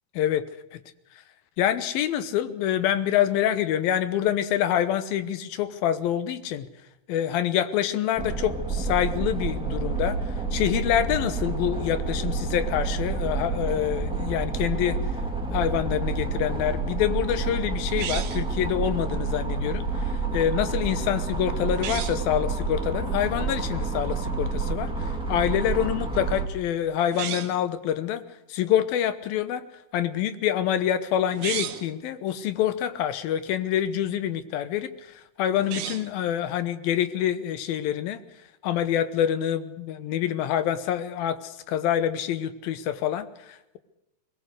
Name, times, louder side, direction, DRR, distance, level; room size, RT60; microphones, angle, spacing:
voice 1, 0.1-0.8 1.6-6.7 7.1-15.0 15.5-28.2 28.5-29.6 29.9-38.2 38.6-43.8, left 10 dB, 75° left, 13 dB, 2.8 m, -26 dB
sound 1, 8.2-26.5, right 4 dB, ahead, 1.4 m, -29 dB
sound 2, 17.9-18.6 21.7-22.3 27.0-27.7 31.3-31.9 35.5-36.2, right 10 dB, 70° right, 1.8 m, -34 dB
21.5 x 20.0 x 6.6 m, 0.93 s
omnidirectional pair, 4.5 m